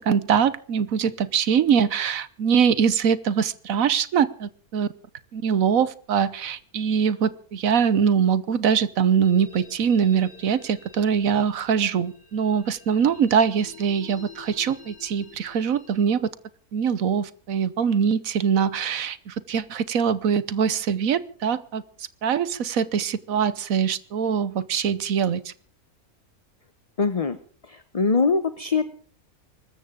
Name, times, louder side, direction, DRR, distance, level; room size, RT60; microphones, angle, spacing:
voice 1, 0.0-4.9 5.3-16.3 16.7-21.8 22.2-25.5, right 7 dB, 70° right, 1.3 m, -23 dB
sound 1, 9.2-16.1, left 5 dB, 75° left, 4.6 m, -48 dB
voice 2, 27.0-27.4 27.7-28.9, left 4 dB, 30° left, 0.8 m, -23 dB
24.0 x 14.0 x 3.8 m
omnidirectional pair, 1.5 m